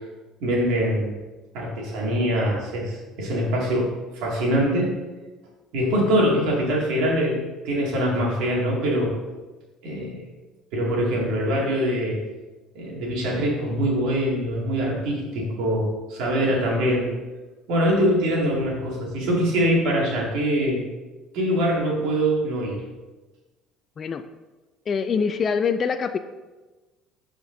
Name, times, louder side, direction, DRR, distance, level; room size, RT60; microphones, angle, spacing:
voice 1, 0.4-1.2 1.5-4.9 5.7-7.4 7.6-9.1 9.8-10.2 10.7-12.2 12.7-17.1 17.7-20.8 21.3-22.8, equal, 75° right, -3 dB, 2.2 m, -23 dB
voice 2, 24.9-26.2, left 6 dB, 35° left, 10 dB, 0.3 m, -24 dB
11.5 x 5.0 x 2.7 m, 1.2 s
cardioid pair, 120°, 0 cm